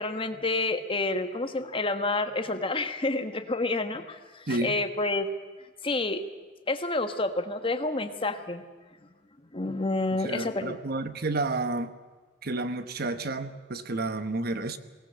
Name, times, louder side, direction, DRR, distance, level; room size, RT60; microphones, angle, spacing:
voice 1, 0.0-5.3 5.8-6.2 6.7-8.6 9.5-10.7, left 2 dB, 30° left, 8 dB, 1.4 m, -29 dB
voice 2, 4.5-4.8 10.2-11.9 12.4-14.8, right 2 dB, 55° right, 11 dB, 1.2 m, -30 dB
22.5 x 18.5 x 7.7 m, 1.4 s
head